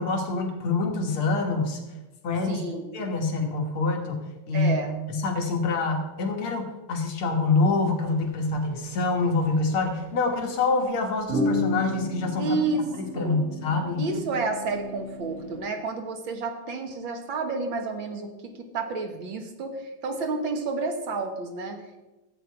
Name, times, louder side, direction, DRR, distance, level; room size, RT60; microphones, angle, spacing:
voice 1, 0.0-1.8 2.2-2.6 2.9-4.7 5.1-12.7 12.9-14.1, left 3 dB, 85° left, 2 dB, 2.4 m, -26 dB
voice 2, 2.4-2.9 4.5-4.9 12.4-12.9 13.1-13.4 14.0-22.0, right 3 dB, 65° right, 4 dB, 2.1 m, -30 dB
sound 1, 8.1-8.2 8.6-8.8 9.6-10.0 11.3-15.6, left 2 dB, 35° right, 2.0 m, -31 dB
13.5 x 8.4 x 4.6 m, 1.1 s
omnidirectional pair, 2.3 m